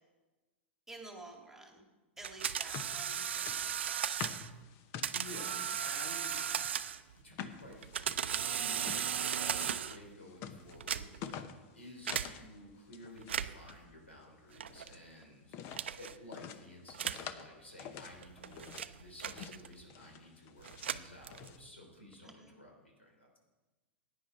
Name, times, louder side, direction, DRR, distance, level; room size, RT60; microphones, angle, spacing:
voice 1, 0.9-1.8 2.2-4.5 22.2-22.5, right 2 dB, 5° right, 1 dB, 2.1 m, -51 dB
sound 1, 2.2-6.0 6.5-12.5 12.7-13.3 13.6-15.0 15.5-15.9 16.3-17.5 17.8-18.9 19.3-19.6 19.9-20.9 21.3-21.6, left 8 dB, 45° left, 0.9 m, -48 dB
sound 2, 2.2-4.5 5.0-7.1 7.7-10.1 10.7-11.3 12.1-12.3 13.2-13.7 14.6-14.9 15.7-16.1 16.9-17.3 18.1-19.8 20.6-21.6, right 8 dB, 75° right, 0.5 m, -36 dB
voice 2, 5.1-6.4 7.2-11.1 11.7-23.4, left 1 dB, 85° left, 1 dB, 3.4 m, -53 dB
16.0 x 9.8 x 4.6 m, 1.2 s
figure-of-eight pair, 95°, 6 cm